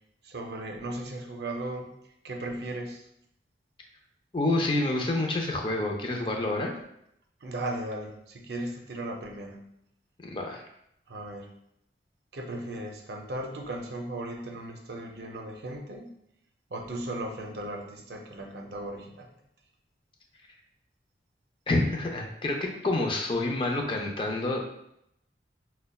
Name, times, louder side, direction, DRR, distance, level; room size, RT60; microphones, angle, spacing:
voice 1, 0.2-1.9 2.2-3.0 7.4-9.7 11.1-11.6 12.3-16.1 16.7-19.3, right 1 dB, 65° right, 3 dB, 0.5 m, -36 dB
voice 2, 4.3-6.7 10.2-10.6 21.7-24.6, left 2 dB, 30° left, 2 dB, 0.5 m, -28 dB
5.2 x 2.2 x 2.2 m, 0.76 s
head